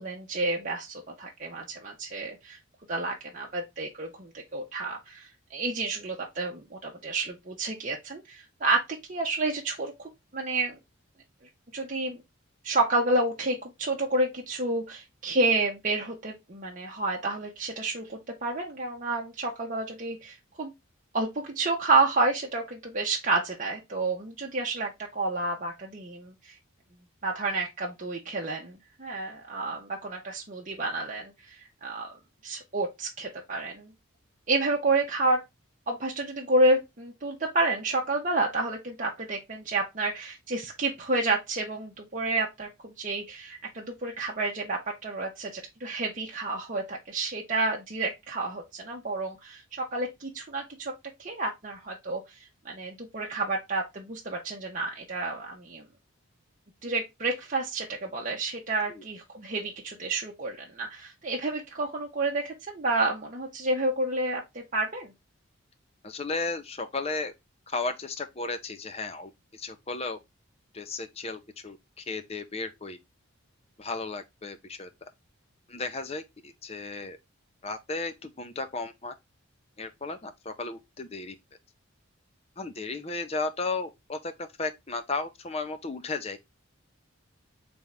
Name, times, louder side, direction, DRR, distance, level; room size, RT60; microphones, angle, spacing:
voice 1, 0.0-2.6 2.9-8.8 9.1-9.9 10.3-10.8 11.7-12.2 12.6-20.7 21.1-26.5 27.2-32.2 32.4-33.9 34.5-35.4 35.9-50.9 51.2-55.8 56.8-65.1, right 2 dB, 40° right, 0.8 m, -30 dB
voice 2, 66.0-67.3 67.7-70.2 70.7-73.0 73.8-74.9 75.7-77.2 77.6-79.1 79.8-81.3 82.6-86.4, left 3 dB, 30° left, 0.6 m, -34 dB
3.7 x 3.5 x 4.1 m
head